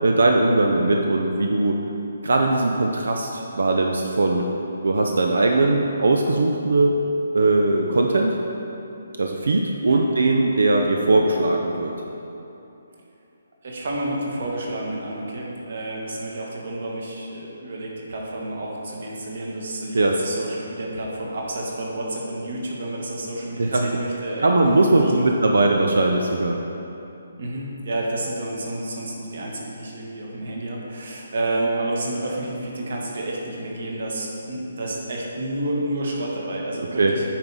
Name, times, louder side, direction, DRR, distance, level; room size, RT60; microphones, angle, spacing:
voice 1, 0.0-1.8 2.2-4.5 4.8-6.9 7.3-8.3 9.2-11.9 19.9-20.1 23.6-23.9 24.4-26.6 37.0-37.1, right 2 dB, 85° right, 2 dB, 0.6 m, -20 dB
voice 2, 13.6-24.5 25.0-25.3 27.4-37.2, right 1 dB, 45° right, -2 dB, 1.4 m, -30 dB
9.0 x 4.7 x 5.6 m, 2.9 s
hypercardioid pair, 175°, 0 cm